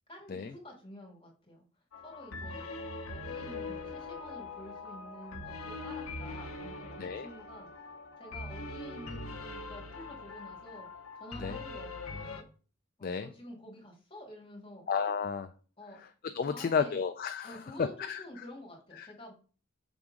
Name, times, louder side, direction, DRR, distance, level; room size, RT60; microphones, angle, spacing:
voice 1, 0.1-1.6 2.0-2.7 3.1-7.7 8.2-10.9 11.2-12.4 13.0-14.9 15.8-16.0 16.4-17.0 17.4-19.3, left 1 dB, 25° left, -2 dB, 2.0 m, -49 dB
sound 1, 1.9-12.4, left 3 dB, 80° left, 0.8 m, -42 dB
voice 2, 14.9-15.5 16.3-18.2 19.0-19.1, left 6 dB, 45° left, 9 dB, 0.3 m, -32 dB
6.2 x 3.5 x 5.1 m, 0.39 s
head